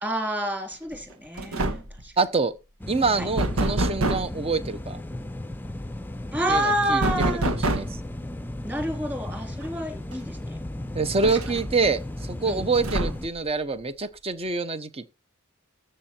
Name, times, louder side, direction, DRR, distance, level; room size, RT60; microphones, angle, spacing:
voice 1, 0.0-2.1 3.2-3.3 6.3-7.5 8.6-10.6 12.5-12.6, right 1 dB, 10° right, 3.2 m, -28 dB
sound 1, 0.9-1.1 1.4-2.0 3.4-4.4 7.0-8.1 9.6-9.7 10.1-10.2 11.2-11.9 12.8-13.4, right 1 dB, 85° right, 1.6 m, -26 dB
voice 2, 2.2-2.5 2.9-5.0 6.5-8.0 10.9-15.1, right 4 dB, 25° right, 0.9 m, -26 dB
sound 2, 2.8-13.3, left 1 dB, 10° left, 0.6 m, -35 dB
14.0 x 7.8 x 4.4 m
head